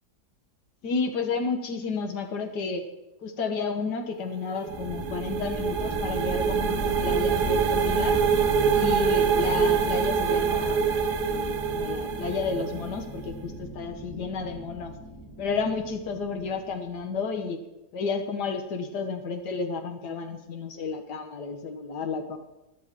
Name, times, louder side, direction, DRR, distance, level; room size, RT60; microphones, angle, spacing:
voice 1, 0.8-2.9 3.2-8.2 8.7-11.0 11.3-14.9 15.4-17.6 17.9-22.4, left 4 dB, 85° left, 5 dB, 1.7 m, -31 dB
sound 1, 4.4-13.1, right 7 dB, 85° right, 1.6 m, -26 dB
sound 2, 4.7-16.9, right 2 dB, 10° left, 3.8 m, -34 dB
18.5 x 11.5 x 3.6 m, 1.0 s
omnidirectional pair, 1.7 m